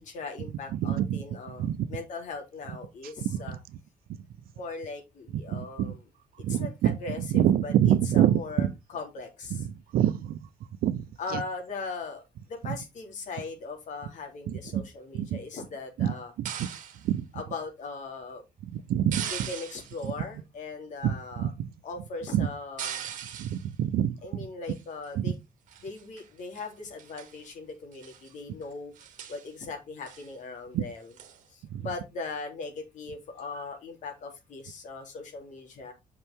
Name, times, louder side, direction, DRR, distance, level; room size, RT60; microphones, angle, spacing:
voice 1, 0.0-3.6 4.5-6.0 6.5-9.7 11.2-12.2 12.5-16.3 17.3-18.4 19.3-21.5 21.8-23.0 24.2-25.3 25.8-31.1 31.5-35.9, left 4 dB, 55° left, 3.4 m, -39 dB
voice 2, 0.7-1.2 1.6-1.9 3.2-3.6 5.5-5.9 6.4-8.7 9.5-10.4 10.8-11.0 11.3-11.4 14.5-14.8 15.1-15.4 16.0-16.7 17.0-17.3 18.7-19.5 20.0-20.1 21.0-21.7 22.3-22.5 23.4-24.2 25.2-25.3 30.7-30.8 31.7-31.9, right 11 dB, 85° right, 0.9 m, -26 dB
sound 1, 16.5-17.1 19.1-20.1 22.8-23.7 24.7-25.1 25.7-26.3 26.6-26.7 27.0-27.4 27.9-28.3 28.6-28.7 29.0-29.5 30.1-30.3 31.2-31.4, right 9 dB, 60° right, 1.7 m, -39 dB
8.5 x 5.9 x 3.8 m
cardioid pair, 180°, 15 cm